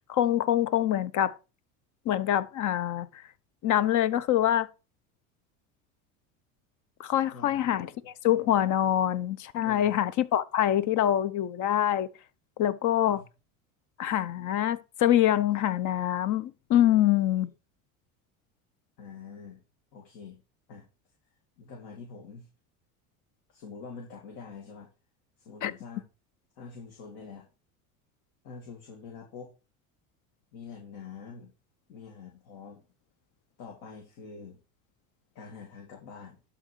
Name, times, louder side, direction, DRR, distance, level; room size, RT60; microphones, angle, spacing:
voice 1, 0.1-1.4 2.1-3.1 3.6-4.7 7.0-12.1 12.6-13.2 14.0-17.5 25.6-25.7, left 12 dB, 50° left, 0.8 m, -25 dB
voice 2, 7.3-8.1 9.6-10.0 13.1-13.2 19.0-19.6 19.9-20.4 20.7-20.9 21.6-22.5 23.5-24.9 25.4-26.1 26.6-27.5 28.4-29.5 30.5-31.5 31.9-32.9 33.6-34.6 35.3-36.4, left 5 dB, 65° left, 2.5 m, -45 dB
12.0 x 4.0 x 4.6 m
hypercardioid pair, 90°, 40 cm